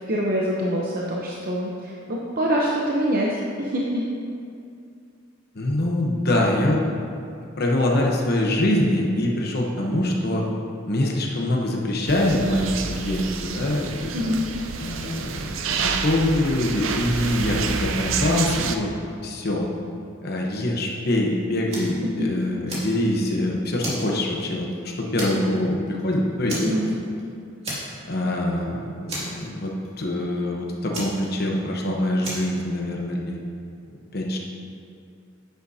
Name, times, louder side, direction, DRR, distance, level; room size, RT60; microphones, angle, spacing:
voice 1, 0.1-4.0 14.1-14.5 22.2-22.3 26.6-27.0, equal, 45° right, -4 dB, 0.8 m, -25 dB
voice 2, 5.6-6.8 7.6-10.4 10.9-14.3 14.8-18.9 19.2-19.7 20.2-24.7 25.0-26.8 28.1-33.4 34.1-34.4, left 1 dB, 55° left, -1 dB, 1.0 m, -24 dB
sound 1, 12.1-18.8, right 5 dB, 85° right, 0.6 m, -29 dB
Fire, 21.7-22.0 22.4-23.3 23.8-24.7 25.2-25.6 25.9-26.0 26.5-27.2 27.6-28.2 28.5-28.6 29.1-29.9 30.9-31.8 32.2-32.6, right 1 dB, 30° right, 2.4 m, -33 dB
11.0 x 9.1 x 2.8 m, 2.4 s
head